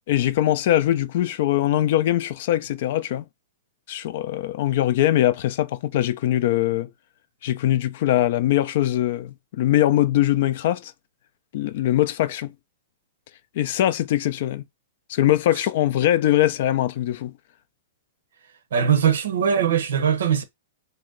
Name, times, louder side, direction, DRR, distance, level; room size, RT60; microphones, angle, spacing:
voice 1, 0.1-3.2 3.9-6.9 7.4-10.9 11.5-12.5 13.6-14.6 15.1-17.3, left 13 dB, 60° left, 0.3 m, -22 dB
voice 2, 18.7-20.4, right 8 dB, 80° right, 0.7 m, -20 dB
2.6 x 2.1 x 3.7 m
hypercardioid pair, 125°, 0 cm